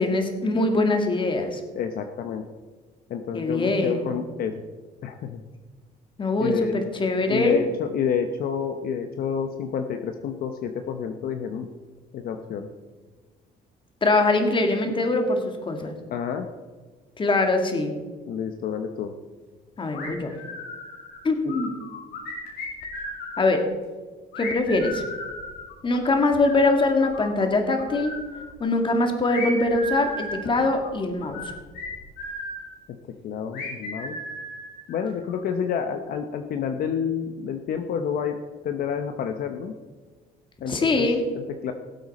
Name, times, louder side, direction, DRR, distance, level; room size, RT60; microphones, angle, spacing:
voice 1, 0.0-1.6 3.3-4.1 6.2-7.6 14.0-15.9 17.2-17.9 19.8-20.3 21.2-21.7 23.4-23.6 24.4-25.0 25.8-28.1 28.6-31.5 40.7-41.2, left 2 dB, 30° left, 5 dB, 2.1 m, -23 dB
voice 2, 1.7-2.5 3.1-4.6 5.0-5.4 6.4-6.8 7.3-11.7 12.1-12.7 16.1-16.5 18.3-19.1 32.9-33.0 33.2-34.2 34.9-38.4 38.6-39.7 40.6-41.1 41.3-41.7, left 7 dB, 60° left, 6 dB, 0.9 m, -29 dB
sound 1, 19.9-21.2 21.5-23.6 24.3-27.5 27.8-28.5 29.3-32.7 33.5-35.3, left 1 dB, 85° left, 4.0 m, -35 dB
18.0 x 8.0 x 4.2 m, 1.4 s
cardioid pair, 110°, 17 cm